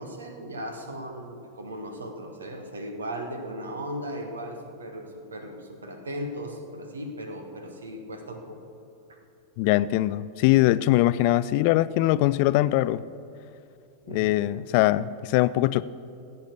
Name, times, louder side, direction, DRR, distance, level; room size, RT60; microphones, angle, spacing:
voice 1, 0.0-8.6 9.1-9.2 14.0-14.4, equal, 70° right, 5 dB, 1.6 m, -37 dB
voice 2, 9.6-13.0 14.1-15.8, left 16 dB, 45° left, 17 dB, 0.3 m, -22 dB
16.5 x 8.3 x 6.6 m, 2.8 s
figure-of-eight pair, 90°, 0 cm